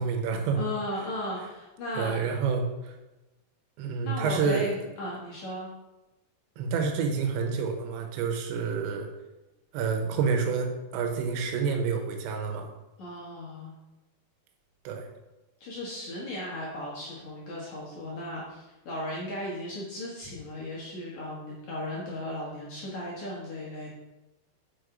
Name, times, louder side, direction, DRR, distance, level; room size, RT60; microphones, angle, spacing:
voice 1, 0.0-0.6 2.0-3.0 3.8-4.7 6.6-9.1 9.7-12.7 14.8-15.1, right 5 dB, 90° right, 4 dB, 3.3 m, -28 dB
voice 2, 0.6-2.2 4.0-5.7 13.0-13.8 15.6-23.9, left 1 dB, 60° left, -5 dB, 2.0 m, -36 dB
6.3 x 5.8 x 5.1 m, 1.0 s
omnidirectional pair, 5.1 m